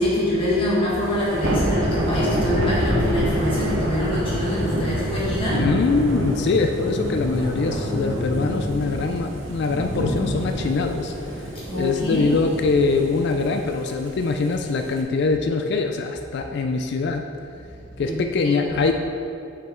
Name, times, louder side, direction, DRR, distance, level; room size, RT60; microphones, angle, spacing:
voice 1, 0.0-5.8 11.5-12.4 18.0-18.2 18.4-18.7, left 1 dB, 25° left, -8 dB, 1.5 m, -24 dB
Thunder / Rain, 1.0-15.0, equal, 70° right, 1.0 m, -27 dB
voice 2, 5.5-11.5 11.7-17.3 18.0-18.9, left 4 dB, 55° left, 5 dB, 0.4 m, -23 dB
6.6 x 5.4 x 4.4 m, 2.8 s
head